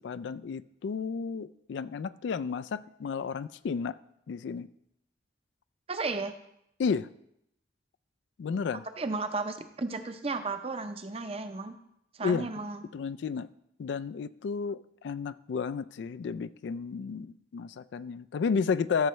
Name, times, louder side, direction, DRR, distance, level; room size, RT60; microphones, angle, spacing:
voice 1, 0.0-4.0 4.3-4.7 6.8-7.1 8.4-8.8 12.2-12.5 12.9-13.5 13.8-19.1, left 5 dB, 75° left, 14 dB, 0.3 m, -32 dB
voice 2, 5.9-6.3 9.0-11.8 12.2-12.8, right 3 dB, 35° right, 8 dB, 0.6 m, -34 dB
13.5 x 6.7 x 3.1 m, 0.77 s
head